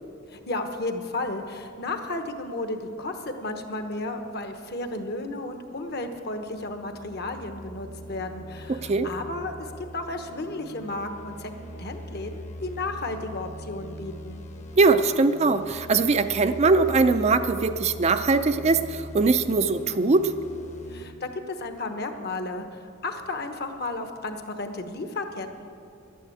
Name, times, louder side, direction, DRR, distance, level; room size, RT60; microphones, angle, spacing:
voice 1, 0.3-14.4 20.9-25.8, left 2 dB, 50° left, 6 dB, 1.1 m, -33 dB
sound 1, 5.9-21.1, left 1 dB, 35° left, 1.0 m, -42 dB
voice 2, 8.7-9.1 14.8-20.3, right 3 dB, 30° right, 10 dB, 0.4 m, -21 dB
11.0 x 10.0 x 8.5 m, 2.5 s
head